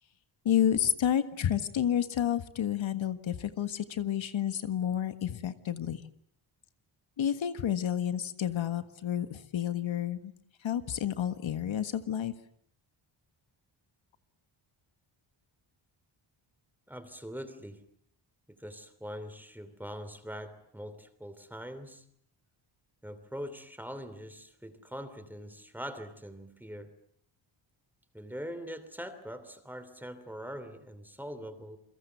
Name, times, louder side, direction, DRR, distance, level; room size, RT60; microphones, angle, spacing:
voice 1, 0.4-6.0 7.2-10.3 10.6-12.3, left 10 dB, 70° left, 10 dB, 1.7 m, -30 dB
voice 2, 16.9-17.8 18.5-22.0 23.0-26.9 28.1-31.8, equal, 5° right, 11 dB, 3.0 m, -42 dB
29.0 x 23.0 x 8.0 m, 0.66 s
wide cardioid pair, 140°, 47 cm